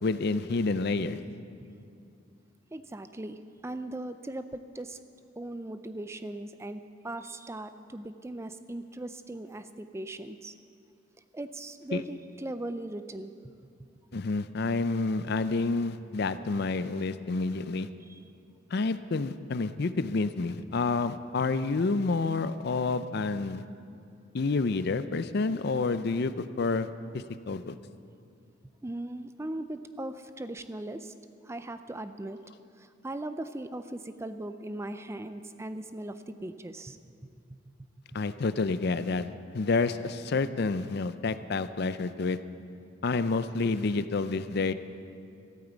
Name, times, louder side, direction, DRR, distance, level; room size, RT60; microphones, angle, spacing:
voice 1, 0.0-1.2 11.9-12.0 14.1-17.9 18.7-23.6 24.3-26.9 27.1-27.7 38.1-39.3 39.5-42.4 43.0-44.7, left 3 dB, 55° left, 12 dB, 0.5 m, -29 dB
voice 2, 2.7-5.0 5.4-10.5 11.3-13.3 18.1-18.2 28.8-31.1 31.4-32.4 32.8-37.0, right 1 dB, 15° right, 10 dB, 0.4 m, -39 dB
14.0 x 9.0 x 8.2 m, 2.4 s
head